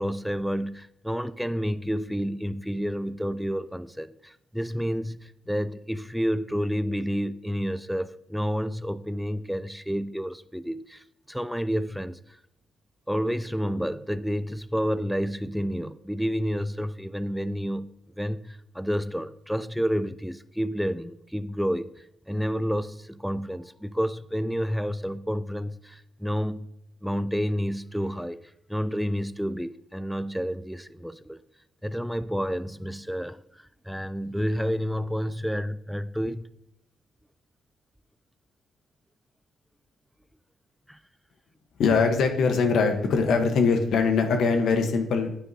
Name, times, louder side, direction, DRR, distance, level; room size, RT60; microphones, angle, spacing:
voice 1, 0.0-12.2 13.1-17.9 18.2-26.7 27.0-31.4 31.8-36.5 40.9-41.0, equal, ahead, 0.4 m, -30 dB
voice 2, 41.8-45.4, left 4 dB, 70° left, 1.1 m, -22 dB
9.2 x 9.1 x 2.8 m
cardioid pair, 115°, 0 cm